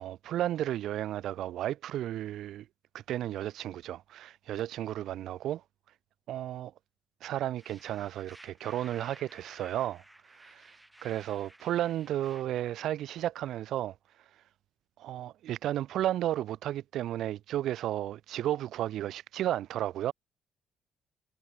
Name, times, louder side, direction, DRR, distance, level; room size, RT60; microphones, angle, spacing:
voice 1, 0.0-2.7 2.9-5.6 6.3-6.7 7.2-10.0 10.3-10.7 11.0-14.0 15.0-20.1, right 12 dB, 80° right, 0.4 m, -33 dB
sound 1, 7.6-12.4, right 1 dB, 10° right, 6.7 m, -55 dB
cardioid pair, 90°, 0 cm